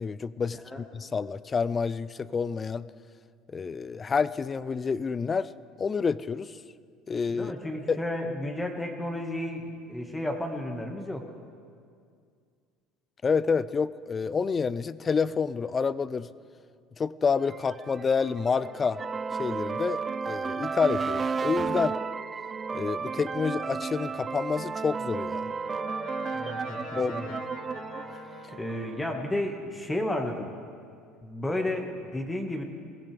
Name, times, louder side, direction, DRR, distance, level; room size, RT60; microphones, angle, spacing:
voice 1, 0.0-2.9 3.5-5.5 5.8-6.6 7.1-7.5 7.9-8.0 13.2-16.3 17.0-19.0 19.4-22.0 22.7-25.5 27.0-27.4, left 5 dB, 30° left, 18 dB, 0.4 m, -28 dB
voice 2, 7.3-11.3 26.3-27.4 28.5-30.5 31.2-32.6, left 1 dB, 10° left, 3 dB, 1.7 m, -32 dB
sound 1, 17.4-29.2, right 5 dB, 30° right, 0.5 m, -33 dB
Brass instrument, 24.7-29.5, left 3 dB, 75° left, 1.7 m, -45 dB
21.5 x 16.0 x 3.4 m, 2.2 s
supercardioid pair, 85°, 0 cm